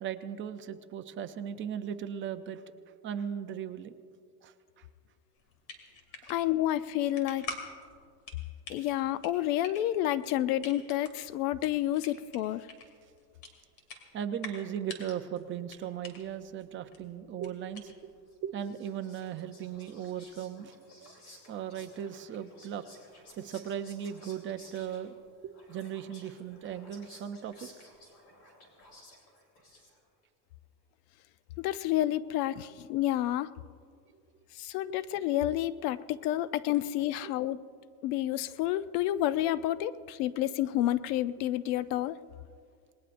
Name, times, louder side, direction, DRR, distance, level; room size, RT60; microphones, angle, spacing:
voice 1, 0.0-2.6 3.0-3.9 4.4-4.9 6.2-6.3 14.1-18.1 18.4-20.7 21.0-21.2 21.5-22.8 23.4-25.2 25.4-27.7 34.9-35.0 36.5-36.6, right 9 dB, 30° right, 8 dB, 0.5 m, -37 dB
sound 1, 5.3-18.3, left 4 dB, 55° left, 2.8 m, -47 dB
voice 2, 6.3-7.4 8.7-12.7 31.6-33.5 34.5-37.6 38.0-42.2, left 13 dB, 90° left, 15 dB, 0.7 m, -29 dB
Whispering, 18.3-30.2, left 1 dB, 35° left, 3.6 m, -56 dB
28.0 x 20.0 x 2.6 m, 2.2 s
cardioid pair, 165°, 44 cm